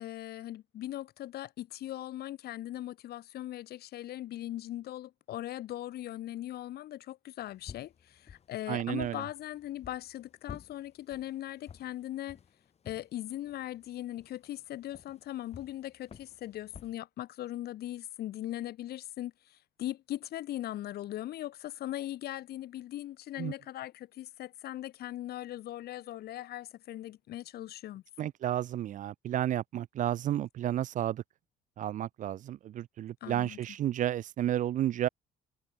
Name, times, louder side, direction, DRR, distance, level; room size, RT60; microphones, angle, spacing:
voice 1, 0.0-12.4 12.8-28.0 33.2-33.6, left 13 dB, 70° left, 2.9 m, -39 dB
sound 1, 7.4-17.0, left 7 dB, 40° left, 2.7 m, -53 dB
voice 2, 8.7-9.2 23.4-23.5 28.2-31.2 31.8-35.1, right 12 dB, 50° right, 0.5 m, -32 dB
cardioid pair, 110°, 17 cm